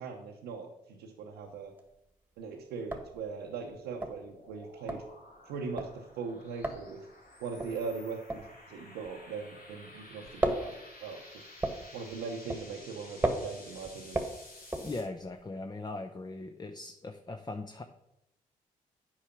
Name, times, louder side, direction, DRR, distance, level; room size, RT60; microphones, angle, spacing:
voice 1, 0.0-1.7 2.4-5.0 5.5-7.1 7.4-11.4 11.9-14.2, right 5 dB, 90° right, 0 dB, 0.8 m, -40 dB
sound 1, 1.5-2.1 2.4-2.5 2.7-9.8 10.1-15.4, right 1 dB, 10° right, 1.5 m, -36 dB
sound 2, 3.1-15.0, left 2 dB, 80° left, 2.9 m, -53 dB
voice 2, 14.8-17.8, left 2 dB, 25° left, 7 dB, 0.7 m, -39 dB
8.7 x 4.9 x 5.9 m, 0.86 s
supercardioid pair, 50°, 17 cm